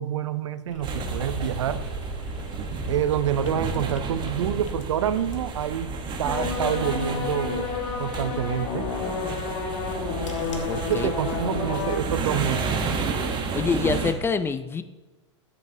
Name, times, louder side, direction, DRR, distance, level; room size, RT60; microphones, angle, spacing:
voice 1, 0.0-1.8 2.9-7.7 8.0-8.9 10.8-12.8, right 9 dB, 75° right, 14 dB, 0.6 m, -27 dB
sound 1, 0.7-10.9, left 2 dB, 85° left, 1.3 m, -45 dB
sound 2, 0.8-14.1, right 4 dB, 30° right, 1.1 m, -31 dB
sound 3, 6.2-12.0, left 5 dB, 60° left, 1.5 m, -31 dB
voice 2, 10.7-11.1 13.3-14.8, left 5 dB, 15° left, 12 dB, 0.4 m, -26 dB
10.5 x 8.3 x 2.8 m, 1.2 s
hypercardioid pair, 105°, 16 cm